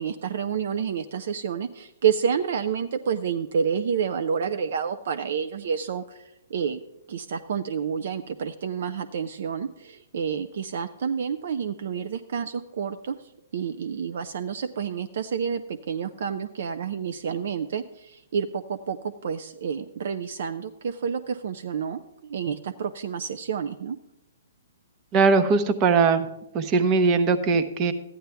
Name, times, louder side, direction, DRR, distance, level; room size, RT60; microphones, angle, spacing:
voice 1, 0.0-6.2 6.5-6.8 7.1-13.2 13.5-24.0, right 7 dB, 60° right, 11 dB, 0.5 m, -29 dB
voice 2, 25.1-26.3 26.5-27.9, right 4 dB, 30° right, 10 dB, 0.8 m, -20 dB
13.5 x 10.0 x 3.4 m, 0.87 s
hypercardioid pair, 125°, 0 cm